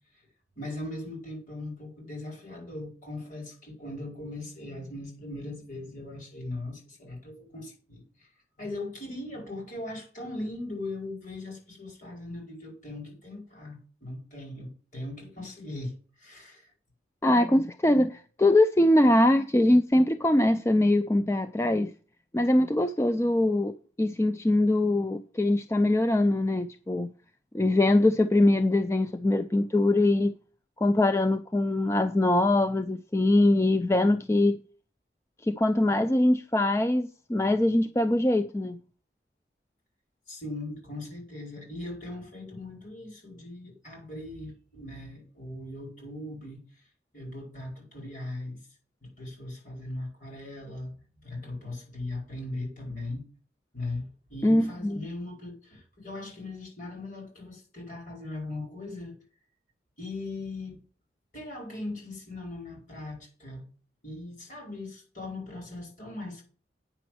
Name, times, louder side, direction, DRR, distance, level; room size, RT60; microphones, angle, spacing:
voice 1, 0.6-8.3 8.6-16.7 40.3-46.8 47.1-48.6 49.0-50.9 51.2-53.2 53.7-59.1 60.0-60.8 61.3-63.6 64.0-66.4, left 2 dB, 45° left, 5.0 m, -39 dB
voice 2, 17.2-21.9 22.3-27.1 27.5-30.3 30.8-34.6 35.4-38.8 54.4-55.0, left 1 dB, 15° left, 0.4 m, -23 dB
8.8 x 6.0 x 7.7 m
head